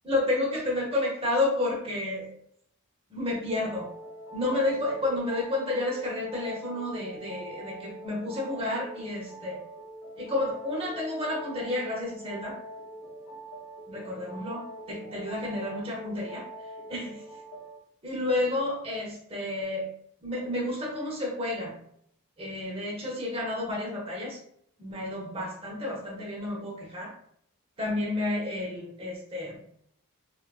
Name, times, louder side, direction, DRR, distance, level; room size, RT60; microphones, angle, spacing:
voice 1, 0.0-2.3 3.1-3.9 4.3-9.6 10.2-12.5 13.9-16.4 16.9-17.2 18.0-19.8 20.2-21.8 22.4-24.4 24.8-27.1 27.8-29.6, left 2 dB, 25° right, -4 dB, 0.9 m, -31 dB
sound 1, 3.5-17.8, right 2 dB, 55° left, 0.6 m, -44 dB
3.4 x 2.3 x 2.3 m, 0.67 s
head